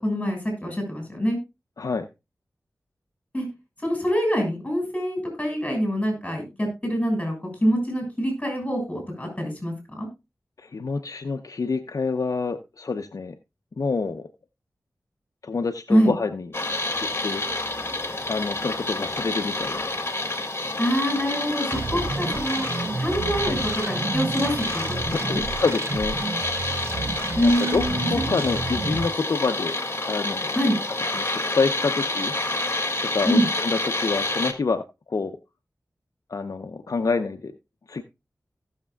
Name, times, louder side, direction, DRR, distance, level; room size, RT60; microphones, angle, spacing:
voice 1, 0.0-1.4 3.3-3.4 3.8-10.1 15.9-16.1 20.8-22.7 23.0-25.4 27.4-28.4 30.5-30.8 33.3-33.5, equal, 20° left, 3 dB, 6.5 m, -25 dB
voice 2, 10.6-13.4 13.8-14.3 15.4-16.5 17.2-17.4 18.3-19.9 21.7-21.8 23.4-23.6 25.1-26.2 27.4-29.8 30.1-30.6 31.1-32.3 33.0-35.4 36.3-37.5 37.9-38.0, left 4 dB, 70° left, 6 dB, 0.8 m, -27 dB
sound 1, 16.5-34.5, left 2 dB, 40° left, 1.8 m, -28 dB
sound 2, 21.7-29.1, right 3 dB, 45° right, 0.6 m, -31 dB
17.5 x 6.8 x 2.3 m, 0.24 s
wide cardioid pair, 55°, 6 cm